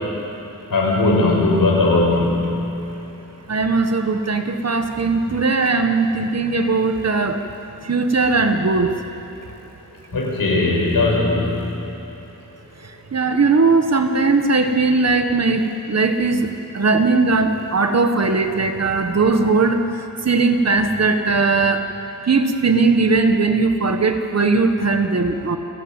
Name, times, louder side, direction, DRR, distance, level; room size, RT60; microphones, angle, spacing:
voice 1, 0.7-3.0 10.1-11.6, left 2 dB, 70° left, -3 dB, 6.4 m, -18 dB
voice 2, 3.5-7.4 7.9-8.9 13.1-16.5 16.7-19.8 20.2-21.8 22.3-25.6, right 3 dB, 45° right, 6 dB, 1.4 m, -18 dB
29.0 x 11.5 x 8.9 m, 3.0 s
wide cardioid pair, 130°, 35 cm